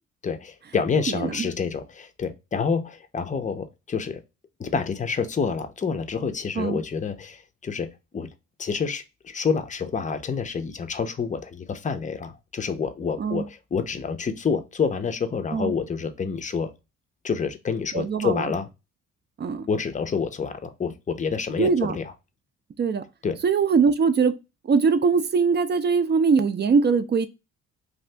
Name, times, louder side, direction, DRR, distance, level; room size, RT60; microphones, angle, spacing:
voice 1, 0.2-4.2 4.6-8.3 8.6-16.7 17.2-18.7 19.7-22.0 23.2-23.4, left 5 dB, 25° left, 0.5 m, -28 dB
voice 2, 1.1-1.5 6.5-6.8 13.2-13.4 15.5-15.7 17.9-18.5 19.4-19.7 21.6-22.0 22.8-23.0 23.4-24.3 24.6-27.3, right 5 dB, 35° right, 0.5 m, -22 dB
2.7 x 2.6 x 3.2 m
cardioid pair, 90°, 30 cm